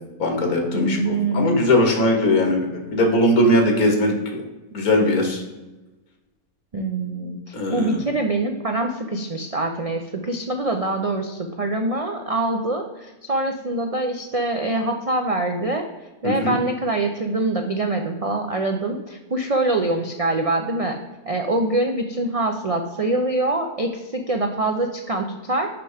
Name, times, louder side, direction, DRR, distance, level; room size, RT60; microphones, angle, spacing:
voice 1, 0.2-4.4 4.7-5.4 7.5-8.0 16.2-16.5, left 1 dB, 85° left, 3 dB, 1.9 m, -20 dB
voice 2, 0.7-1.5 6.7-15.8 16.2-21.0 21.3-25.7, right 2 dB, 70° right, 3 dB, 0.3 m, -24 dB
5.9 x 5.7 x 4.9 m, 1.1 s
omnidirectional pair, 1.5 m